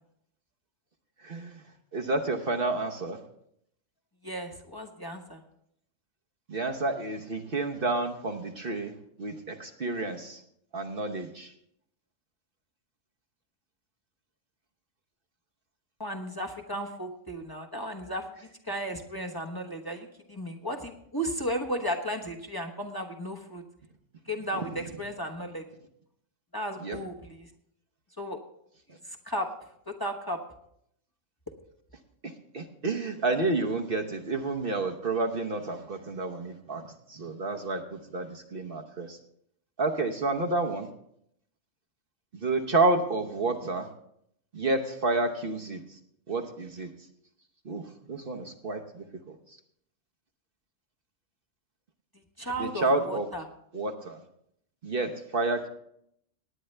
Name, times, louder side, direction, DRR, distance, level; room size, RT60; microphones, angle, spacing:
voice 1, 1.2-1.6 1.9-3.2 6.5-8.9 9.2-10.4 10.7-11.5 24.5-24.6 26.8-27.0 32.2-39.2 39.8-40.9 42.3-43.9 44.5-46.0 46.3-46.9 47.6-49.6 52.6-53.3 53.7-54.2 54.8-55.7, right 2 dB, 50° right, 4 dB, 1.1 m, -30 dB
voice 2, 4.2-5.4 16.0-18.3 18.7-23.6 24.3-25.6 26.5-27.5 28.2-28.4 29.3-29.5 29.9-30.4 52.4-53.4, equal, 20° left, 2 dB, 1.1 m, -34 dB
19.0 x 9.3 x 3.3 m, 0.72 s
omnidirectional pair, 1.3 m